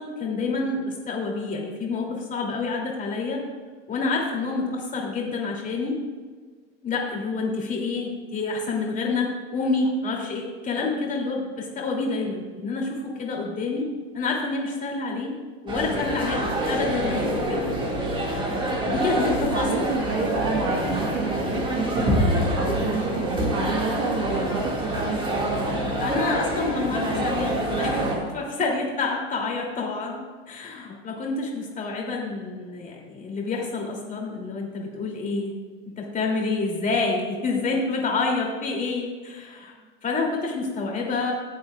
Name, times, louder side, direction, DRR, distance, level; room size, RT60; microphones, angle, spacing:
voice 1, 0.0-3.4 3.9-6.0 6.8-13.9 14.1-15.3 15.6-17.6 18.1-20.3 26.0-30.2 30.5-35.5 36.0-39.7 40.0-41.3, left 3 dB, 25° left, -1 dB, 2.8 m, -28 dB
sound 1, 15.7-28.2, right 1 dB, 15° right, 1.9 m, -26 dB
voice 2, 19.5-25.8 27.9-28.3, right 4 dB, 45° right, 2 dB, 1.4 m, -30 dB
15.0 x 7.8 x 2.4 m, 1.5 s
hypercardioid pair, 110°, 31 cm